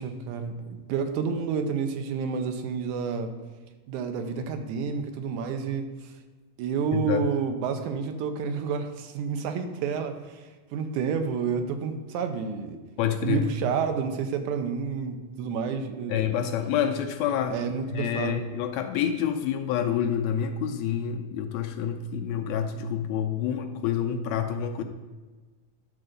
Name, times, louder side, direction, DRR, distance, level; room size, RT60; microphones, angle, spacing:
voice 1, 0.0-3.3 3.9-6.1 6.6-12.8 13.2-16.2 17.5-18.4, right 6 dB, 85° right, 7 dB, 2.2 m, -30 dB
voice 2, 6.9-7.2 13.0-13.5 16.1-17.6 17.9-24.8, left 8 dB, 80° left, 5 dB, 1.7 m, -28 dB
10.5 x 3.8 x 6.6 m, 1.3 s
omnidirectional pair, 3.4 m